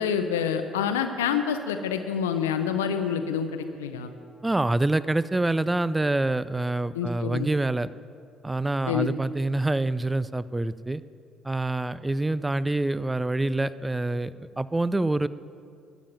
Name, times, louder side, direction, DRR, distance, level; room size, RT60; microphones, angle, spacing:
voice 1, 0.0-4.1 6.9-7.5 8.9-9.1, left 7 dB, 85° left, 7 dB, 0.5 m, -27 dB
voice 2, 4.4-7.9 8.4-11.0 11.4-15.3, right 2 dB, 15° right, 16 dB, 0.4 m, -26 dB
12.0 x 7.1 x 9.2 m, 2.3 s
hypercardioid pair, 55°, 0 cm